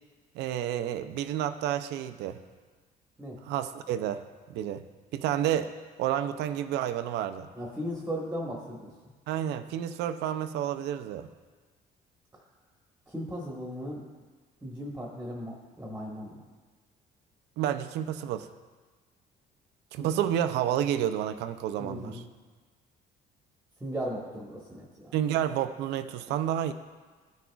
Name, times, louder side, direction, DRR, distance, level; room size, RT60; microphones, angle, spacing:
voice 1, 0.3-2.4 3.4-4.2 4.5-4.9 5.1-5.7 6.0-7.5 9.3-11.3 17.6-18.5 19.9-22.2 25.1-26.7, right 10 dB, 85° right, 10 dB, 0.5 m, -30 dB
voice 2, 7.5-8.9 13.1-14.0 14.6-16.4 19.9-20.1 21.8-22.2 23.8-25.1, equal, 10° right, -2 dB, 1.3 m, -37 dB
14.5 x 6.2 x 2.4 m, 1.4 s
cardioid pair, 110°, 17 cm